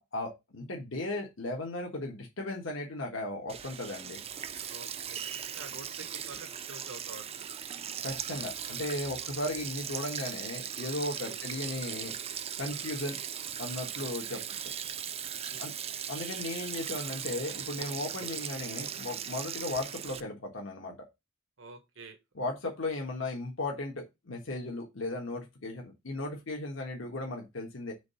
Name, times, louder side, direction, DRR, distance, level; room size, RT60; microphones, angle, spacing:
voice 1, 0.1-4.2 8.0-12.1 12.6-13.2 13.6-14.4 15.6-15.7 16.1-20.9 22.3-27.9, left 2 dB, 85° left, 1.5 m, -36 dB
Sink (filling or washing), 3.5-20.2, right 9 dB, 30° right, 0.4 m, -38 dB
voice 2, 4.7-7.5 9.5-9.6 11.2-11.4 14.0-14.5 15.5-16.0 21.6-22.2, right 3 dB, 85° right, 1.3 m, -49 dB
5.1 x 3.7 x 5.5 m
head